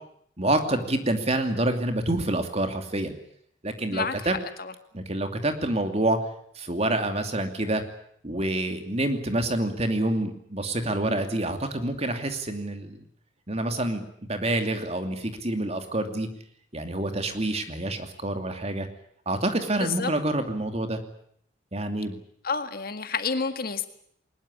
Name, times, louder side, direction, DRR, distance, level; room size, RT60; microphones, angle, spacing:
voice 1, 0.4-3.2 3.6-4.3 4.9-6.2 6.5-7.8 8.2-13.0 13.5-16.3 16.7-18.9 19.3-21.0 21.7-22.2, right 1 dB, 35° right, 6 dB, 2.8 m, -27 dB
voice 2, 3.9-4.3 4.6-4.7 19.8-20.1 22.4-23.9, left 5 dB, 55° left, 9 dB, 1.9 m, -29 dB
21.5 x 20.5 x 9.9 m, 0.68 s
head